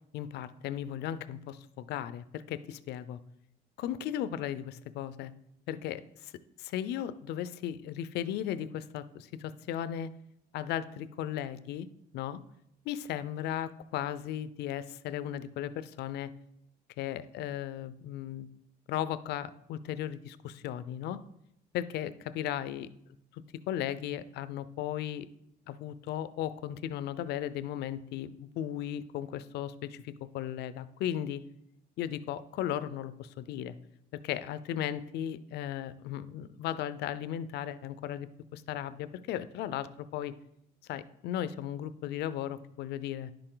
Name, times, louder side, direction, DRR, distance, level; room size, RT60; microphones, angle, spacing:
voice 1, 0.1-3.2 3.8-5.3 5.7-6.3 6.6-10.1 10.5-11.9 12.1-12.4 12.9-16.3 17.0-18.5 18.9-21.2 21.7-22.9 23.3-25.3 25.7-31.4 32.0-33.7 34.1-40.3 40.9-43.3, left 11 dB, 75° left, 15 dB, 0.6 m, -36 dB
10.5 x 6.7 x 3.9 m, 0.77 s
cardioid pair, 110°, 17 cm